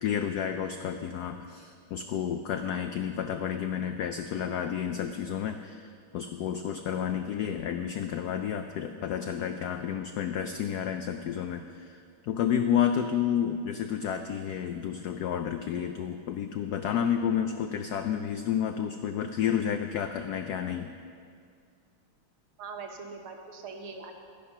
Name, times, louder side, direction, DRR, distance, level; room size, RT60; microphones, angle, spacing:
voice 1, 0.0-20.9, left 8 dB, 90° left, 7 dB, 0.8 m, -31 dB
voice 2, 22.6-24.1, right 4 dB, 80° right, 3 dB, 2.0 m, -41 dB
12.0 x 10.5 x 5.6 m, 2.3 s
omnidirectional pair, 2.3 m